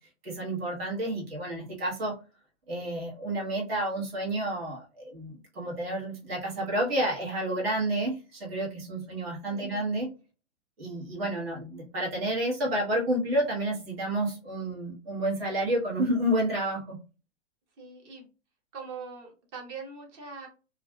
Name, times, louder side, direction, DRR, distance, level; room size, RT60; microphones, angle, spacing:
voice 1, 0.2-2.2 2.7-10.1 10.8-17.0, right 1 dB, 55° right, -2 dB, 1.4 m, -30 dB
voice 2, 9.4-9.8 17.8-18.3 18.7-20.5, right 5 dB, 30° right, 1 dB, 0.8 m, -42 dB
2.5 x 2.4 x 2.2 m, 0.32 s
hypercardioid pair, 150°, 35 cm